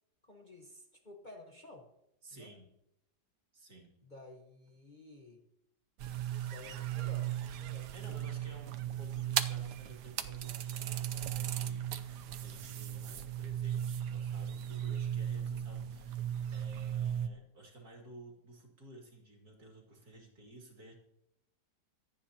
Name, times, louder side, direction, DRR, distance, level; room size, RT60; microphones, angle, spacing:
voice 1, 0.3-1.9 2.3-2.5 4.0-5.4 6.5-8.2, left 2 dB, 30° left, 1 dB, 1.2 m, -53 dB
voice 2, 2.2-2.7 3.5-3.9 7.9-20.9, right 1 dB, 65° right, -1 dB, 3.0 m, -54 dB
sound 1, 6.0-17.3, right 10 dB, 80° right, 1.3 m, -37 dB
25.0 x 8.9 x 2.9 m, 0.83 s
omnidirectional pair, 1.8 m